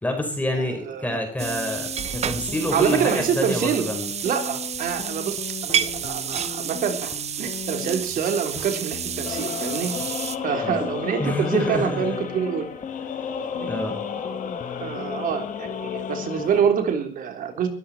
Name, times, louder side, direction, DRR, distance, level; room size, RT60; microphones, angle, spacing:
voice 1, 0.0-4.1 10.6-10.9 11.2-12.1 13.7-14.0, left 1 dB, 10° left, 3 dB, 4.7 m, -27 dB
voice 2, 0.6-1.2 2.7-3.9 4.2-9.9 10.4-12.7 13.6-13.7 14.8-17.7, right 7 dB, 75° right, 6 dB, 3.8 m, -26 dB
sound 1, 1.1-16.7, left 6 dB, 40° left, 1.5 m, -37 dB
sound 2, 1.4-10.4, right 8 dB, 50° right, 0.9 m, -30 dB
sound 3, 9.2-16.6, left 7 dB, 65° left, 3.3 m, -33 dB
22.5 x 13.5 x 4.5 m, 0.39 s
cardioid pair, 150°, 14 cm